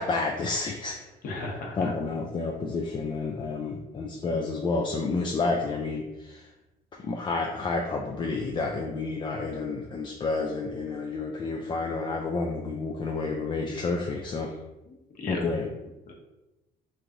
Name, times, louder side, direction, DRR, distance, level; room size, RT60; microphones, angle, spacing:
voice 1, 0.0-1.1 1.8-6.5 6.9-14.6 15.3-15.7, left 3 dB, 30° left, 0 dB, 0.3 m, -30 dB
voice 2, 1.2-1.9 14.9-15.4 16.1-16.2, left 2 dB, 55° left, 0 dB, 0.9 m, -36 dB
3.2 x 2.5 x 3.5 m, 1.0 s
cardioid pair, 110°, 17 cm